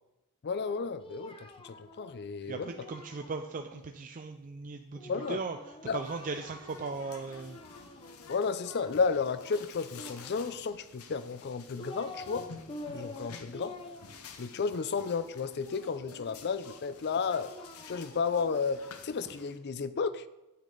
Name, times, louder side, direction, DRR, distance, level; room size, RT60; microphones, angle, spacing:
voice 1, 0.4-2.7 5.1-5.4 5.8-6.0 8.3-12.5 12.9-13.8 14.4-17.5 17.9-20.2, left 5 dB, 50° left, 15 dB, 0.4 m, -32 dB
Singing, 0.5-3.8 4.9-7.0 7.3-8.5 9.9-10.9 11.4-12.4 12.7-16.3 17.1-19.4, left 2 dB, 25° left, 0.9 m, -48 dB
voice 2, 2.4-7.6, right 4 dB, 35° right, 6 dB, 0.4 m, -38 dB
sound 1, 6.0-19.6, left 5 dB, 70° left, 0.9 m, -51 dB
9.2 x 8.5 x 4.0 m, 1.0 s
head